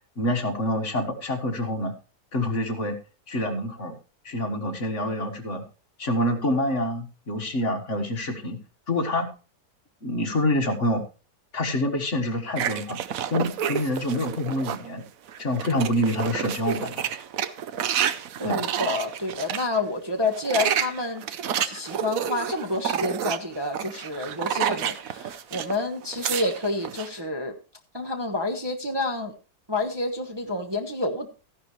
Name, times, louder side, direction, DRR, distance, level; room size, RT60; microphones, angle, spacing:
voice 1, 0.2-1.9 2.3-3.0 3.3-3.9 4.2-5.6 6.0-8.6 8.9-9.3 10.0-11.0 11.5-13.0 13.3-15.0 15.4-17.1 18.4-18.6, left 1 dB, 50° left, 5 dB, 1.8 m, -26 dB
sound 1, 12.6-14.9 15.3-19.7 20.2-25.8 26.0-27.1, right 9 dB, 65° right, 1.1 m, -29 dB
voice 2, 18.4-21.2 21.6-27.5 27.9-29.3 29.7-31.3, left 2 dB, 15° right, 2 dB, 1.1 m, -29 dB
14.5 x 11.0 x 3.1 m, 0.32 s
omnidirectional pair, 1.7 m